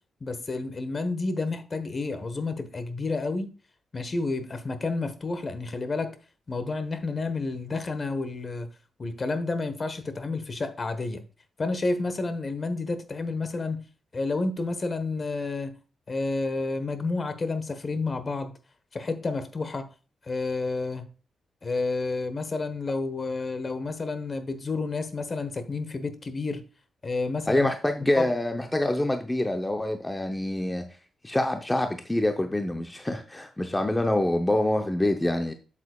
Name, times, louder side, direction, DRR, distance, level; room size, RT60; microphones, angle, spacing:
voice 1, 0.2-3.5 3.9-6.1 6.5-8.7 9.0-11.2 11.6-13.8 14.1-15.7 16.1-18.5 18.9-19.8 20.3-21.1 21.6-26.6 27.0-27.7 28.2-28.3, left 3 dB, 35° left, 1.1 m, -30 dB
voice 2, 27.5-30.9 31.2-35.5, left 1 dB, 15° left, 0.7 m, -26 dB
8.0 x 7.3 x 2.3 m
cardioid pair, 95°, 0 cm